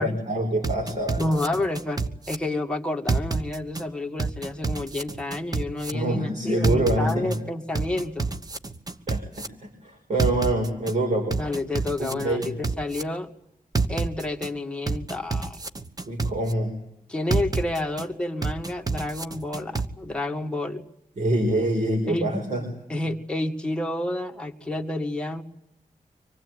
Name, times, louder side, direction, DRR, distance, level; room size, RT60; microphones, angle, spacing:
voice 1, 0.0-1.3 5.9-7.3 9.1-11.4 12.0-12.5 16.0-16.8 21.2-22.7, right 1 dB, 55° right, 2 dB, 4.8 m, -26 dB
sound 1, 0.6-2.4 3.1-3.8 4.2-5.9 6.6-7.4 7.7-9.5 10.2-10.9 11.3-13.0 13.7-14.5 14.9-16.5 17.3-18.0 18.4-19.9, right 4 dB, 25° right, 1.2 m, -27 dB
voice 2, 1.2-8.3 11.4-13.3 13.9-15.6 17.1-20.8 22.1-22.3 22.9-25.4, left 2 dB, 5° left, 2 dB, 2.2 m, -29 dB
25.5 x 19.5 x 9.0 m, 0.81 s
wide cardioid pair, 165°, 14 cm